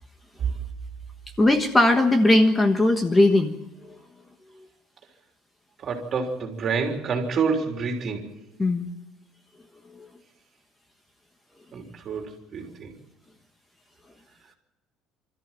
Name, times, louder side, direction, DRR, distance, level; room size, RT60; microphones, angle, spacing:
voice 1, 1.4-3.6 8.6-8.9 9.9-10.1, left 1 dB, 15° left, 6 dB, 1.3 m, -19 dB
voice 2, 5.8-8.3 11.7-12.9, right 5 dB, 35° right, 2 dB, 3.7 m, -28 dB
26.0 x 14.0 x 7.5 m, 1.0 s
cardioid pair, 150°, 0 cm